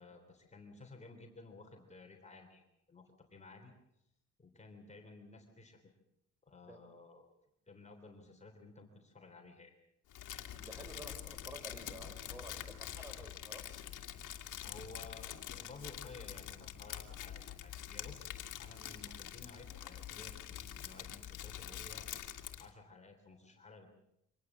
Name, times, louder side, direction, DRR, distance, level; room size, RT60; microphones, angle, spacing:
voice 1, 0.0-3.7 4.4-5.8 6.4-7.3 7.7-9.7 14.6-22.1 22.6-23.9, left 3 dB, 25° left, 3 dB, 3.5 m, -55 dB
Crumpling crinkling, 10.1-22.7, left 11 dB, 80° left, 2.2 m, -46 dB
voice 2, 10.6-13.7, equal, 10° right, 6 dB, 4.3 m, -51 dB
25.0 x 19.5 x 7.5 m, 0.81 s
cardioid pair, 130°, 30 cm